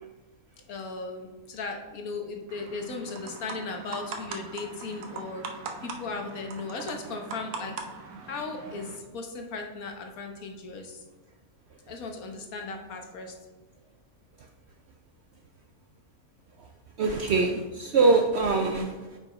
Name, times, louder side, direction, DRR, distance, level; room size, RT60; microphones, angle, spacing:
voice 1, 0.7-5.4 5.8-7.7 8.2-11.0 11.9-13.3, left 3 dB, 70° left, 3 dB, 1.4 m, -37 dB
sound 1, 2.5-9.0, right 4 dB, 90° right, 1.3 m, -41 dB
voice 2, 17.0-19.2, right 3 dB, 65° right, 4 dB, 0.6 m, -24 dB
9.2 x 5.4 x 3.1 m, 1.3 s
omnidirectional pair, 1.6 m